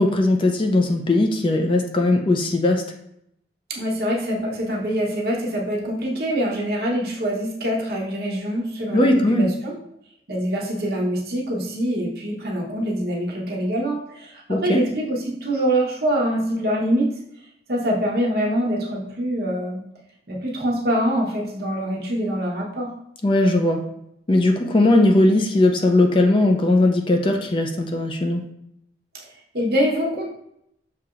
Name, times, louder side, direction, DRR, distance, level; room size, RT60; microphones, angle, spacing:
voice 1, 0.0-2.8 8.9-9.5 14.5-14.8 23.2-23.9 24.3-28.4, left 2 dB, 30° left, 3 dB, 0.4 m, -18 dB
voice 2, 3.7-9.7 10.3-17.1 17.7-19.8 20.3-22.9 29.1-29.3 29.5-30.3, equal, 60° right, -2 dB, 1.0 m, -24 dB
6.6 x 2.9 x 2.4 m, 0.76 s
head